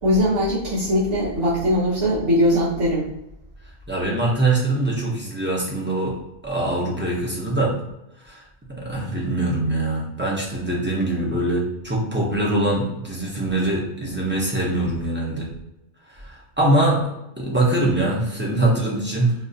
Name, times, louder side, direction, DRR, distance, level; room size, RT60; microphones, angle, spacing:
voice 1, 0.0-3.1, equal, 85° right, -10 dB, 1.3 m, -20 dB
voice 2, 3.9-6.2 6.4-7.8 8.2-8.4 8.8-15.5 16.1-17.0 17.4-19.3, right 2 dB, 15° right, -4 dB, 0.6 m, -23 dB
3.8 x 2.4 x 2.6 m, 0.90 s
omnidirectional pair, 1.2 m